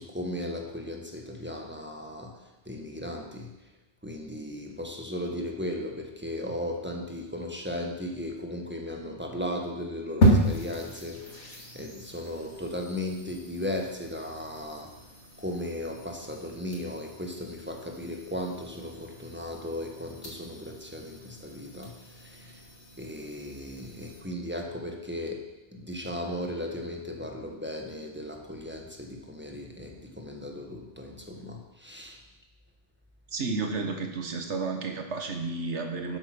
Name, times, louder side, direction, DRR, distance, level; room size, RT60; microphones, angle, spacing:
voice 1, 0.0-3.5 4.0-14.9 15.4-22.6 23.0-32.2, left 1 dB, 10° right, 1 dB, 1.5 m, -36 dB
sound 1, 10.2-24.2, right 1 dB, 75° left, 2.9 m, -33 dB
voice 2, 33.3-36.2, right 4 dB, 80° right, 5 dB, 1.6 m, -32 dB
12.0 x 8.5 x 6.2 m, 1.0 s
omnidirectional pair, 1.2 m